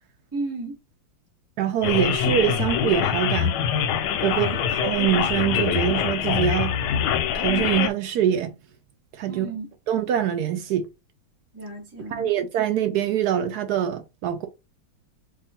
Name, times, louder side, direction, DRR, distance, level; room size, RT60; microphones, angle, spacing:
voice 1, 0.3-0.8 4.3-4.6 9.3-9.7 11.5-12.3, right 2 dB, 10° right, 0.7 m, -34 dB
voice 2, 1.6-3.5 4.2-4.5 4.8-6.8 7.3-8.5 9.2-9.5 9.9-10.9 12.1-14.5, right 10 dB, 75° right, 0.9 m, -24 dB
sound 1, 1.8-7.9, left 8 dB, 70° left, 1.1 m, -24 dB
3.6 x 2.3 x 4.2 m
omnidirectional pair, 2.2 m